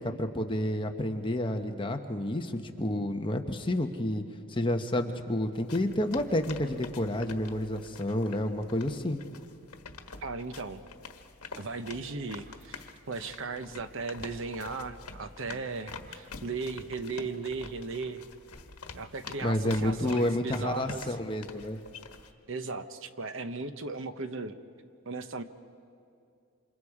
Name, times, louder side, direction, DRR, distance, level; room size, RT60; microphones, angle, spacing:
voice 1, 0.0-4.2 4.5-9.2 19.4-21.8, left 1 dB, 20° left, 5 dB, 1.1 m, -30 dB
sound 1, 5.5-22.3, left 4 dB, 85° left, 1.4 m, -47 dB
voice 2, 10.2-10.8 11.6-18.2 18.9-21.2 22.5-24.6 25.0-25.4, right 4 dB, 60° right, 10 dB, 0.9 m, -37 dB
28.5 x 26.5 x 4.9 m, 2.5 s
head